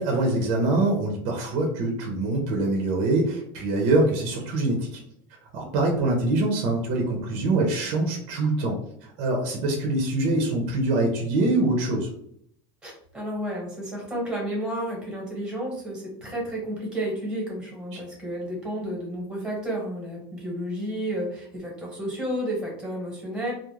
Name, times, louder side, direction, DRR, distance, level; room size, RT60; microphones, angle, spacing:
voice 1, 0.0-5.0 5.5-12.1 17.9-18.0, right 2 dB, 55° right, 1 dB, 0.6 m, -24 dB
voice 2, 12.8-23.5, right 1 dB, 5° right, -3 dB, 1.0 m, -31 dB
2.4 x 2.0 x 3.1 m, 0.69 s
supercardioid pair, 150°, 13 cm